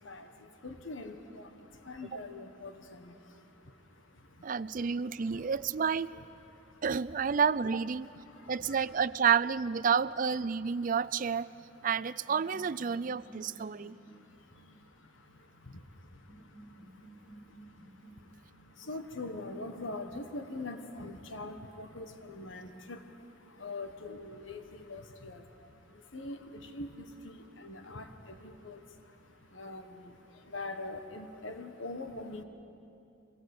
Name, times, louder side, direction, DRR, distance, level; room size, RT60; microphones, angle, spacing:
voice 1, 0.0-5.5 6.1-6.9 8.0-9.0 10.8-10.9 11.5-11.9 12.9-32.4, left 2 dB, 80° left, 7 dB, 1.4 m, -45 dB
voice 2, 4.4-6.1 6.8-8.1 8.5-11.5 11.8-14.0, right 6 dB, 45° right, 17 dB, 0.4 m, -30 dB
sound 1, 10.8-18.8, right 1 dB, 55° left, 6.8 m, -57 dB
24.0 x 17.5 x 8.4 m, 2.7 s
head